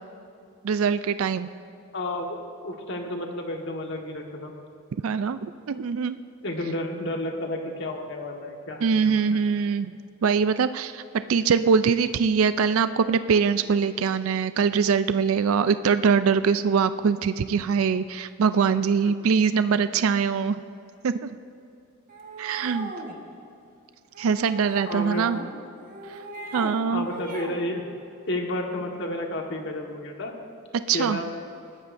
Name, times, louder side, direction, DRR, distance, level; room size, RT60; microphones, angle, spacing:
voice 1, 0.6-1.5 5.0-6.2 8.8-9.9 10.2-11.0 11.3-20.6 21.0-21.4 22.4-22.9 24.2-25.4 26.5-27.0 30.9-31.2, right 6 dB, 70° right, 12 dB, 0.4 m, -23 dB
voice 2, 1.9-2.4 2.6-4.5 6.4-9.4 19.0-19.1 24.9-25.3 26.9-27.8 28.3-30.3 30.9-31.3, left 1 dB, 55° left, 2 dB, 1.5 m, -31 dB
sound 1, 22.1-23.2 24.1-25.5 25.9-26.8 27.0-27.6, right 2 dB, 40° right, 1.4 m, -38 dB
20.5 x 14.5 x 2.6 m, 2.6 s
head